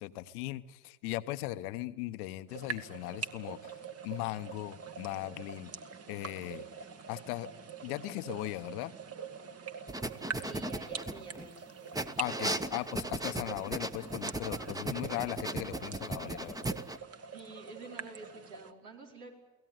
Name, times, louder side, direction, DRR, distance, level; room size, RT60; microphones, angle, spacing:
voice 1, 0.0-3.8 4.0-5.7 6.1-6.6 7.1-7.5 7.8-8.9 12.2-16.7, left 17 dB, 80° left, 12 dB, 1.0 m, -38 dB
sound 1, 2.5-18.7, right 6 dB, 35° right, 1.5 m, -45 dB
sound 2, 9.9-11.5 11.9-17.0, right 1 dB, 10° right, 1.0 m, -36 dB
voice 2, 10.4-11.9 17.3-19.3, right 3 dB, 85° right, 1 dB, 4.9 m, -49 dB
23.0 x 17.0 x 9.4 m, 1.1 s
hypercardioid pair, 75°, 44 cm